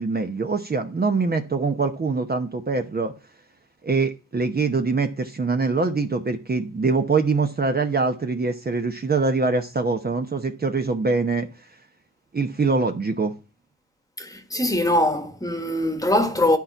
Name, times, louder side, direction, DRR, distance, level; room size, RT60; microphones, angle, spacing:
voice 1, 0.0-3.1 3.8-11.5 12.3-13.3, right 4 dB, 30° right, 0.9 m, -23 dB
voice 2, 14.2-16.6, left 1 dB, 10° left, 1.4 m, -22 dB
10.5 x 4.4 x 5.4 m
cardioid pair, 80°, 33 cm